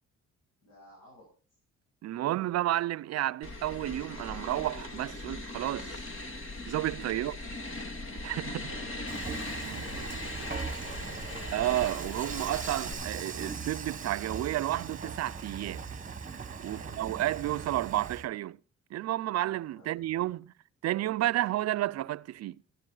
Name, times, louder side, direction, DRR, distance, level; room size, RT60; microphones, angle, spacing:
voice 1, 0.6-1.3 7.0-7.2 8.5-9.5 9.8-11.5 16.7-17.0 19.7-20.0, left 1 dB, 70° left, 7.6 m, -51 dB
voice 2, 2.0-6.0 6.7-7.4 8.2-8.7 9.6-9.8 11.5-15.8 16.6-18.6 18.9-20.5 20.8-22.6, right 14 dB, 60° right, 0.5 m, -31 dB
sound 1, 3.4-12.9, left 2 dB, 45° left, 1.9 m, -40 dB
Dishes pots and pans / Frying (food), 9.1-18.3, right 5 dB, 25° right, 1.2 m, -40 dB
13.0 x 11.0 x 3.9 m
cardioid pair, 90°, 30 cm